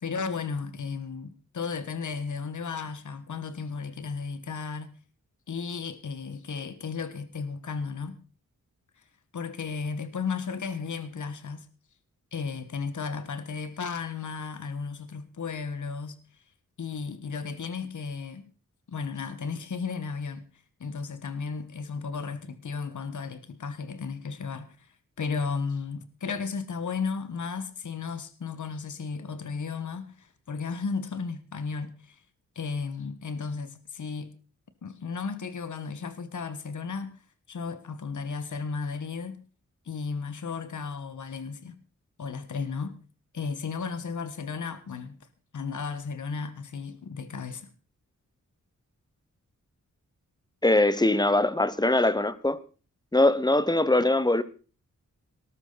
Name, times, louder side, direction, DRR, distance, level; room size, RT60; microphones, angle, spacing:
voice 1, 0.0-4.9 5.5-8.2 9.3-11.7 12.3-16.2 16.8-18.5 18.9-20.5 20.8-24.9 25.2-32.2 32.5-34.3 34.8-37.2 37.5-39.4 39.8-41.8 42.2-43.0 43.3-45.2 45.5-47.7, left 5 dB, 70° left, 1.5 m, -34 dB
voice 2, 50.6-52.6 53.1-54.4, left 2 dB, 15° left, 1.1 m, -22 dB
19.0 x 12.5 x 4.1 m
wide cardioid pair, 100°, 31 cm